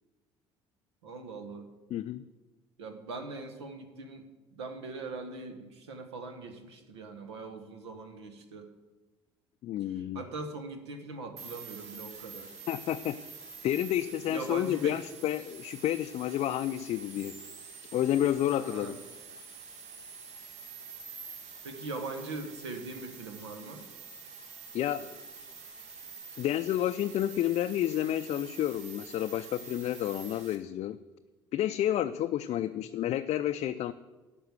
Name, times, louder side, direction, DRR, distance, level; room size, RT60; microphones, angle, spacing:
voice 1, 1.0-1.7 2.8-4.3 4.5-8.7 9.9-12.5 14.2-15.0 18.6-19.0 21.6-23.8 32.5-32.8, right 3 dB, 80° right, 6 dB, 1.2 m, -41 dB
voice 2, 1.9-2.2 9.6-10.2 12.7-13.2 13.6-17.4 17.9-19.0 24.7-25.1 26.4-31.0 31.5-33.9, left 12 dB, 50° left, 8 dB, 0.4 m, -30 dB
sound 1, 11.4-30.6, right 5 dB, 55° right, 1.6 m, -47 dB
11.5 x 5.5 x 8.1 m, 1.2 s
hypercardioid pair, 55°, 14 cm